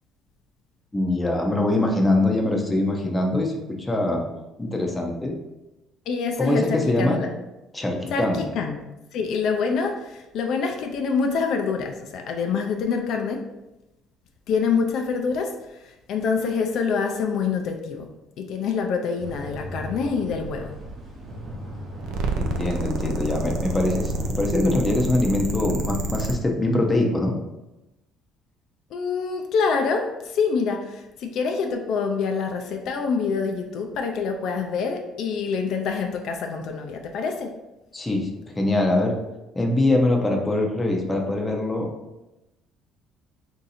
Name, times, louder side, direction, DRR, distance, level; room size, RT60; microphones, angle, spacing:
voice 1, 0.9-4.2 4.6-5.3 6.4-7.2 7.7-8.4 22.4-27.3 37.9-38.3 38.6-39.2 39.6-41.9, left 2 dB, 10° left, 1 dB, 0.6 m, -23 dB
voice 2, 6.1-7.3 8.1-8.8 9.1-13.4 14.5-15.5 15.9-18.1 18.4-20.7 28.9-37.5, left 5 dB, 60° left, 3 dB, 0.4 m, -26 dB
sound 1, 19.2-24.3, right 1 dB, 40° right, 0.9 m, -36 dB
sound 2, 22.0-26.4, right 2 dB, 75° right, 0.5 m, -28 dB
3.7 x 2.7 x 4.1 m, 0.98 s
cardioid pair, 140°, 0 cm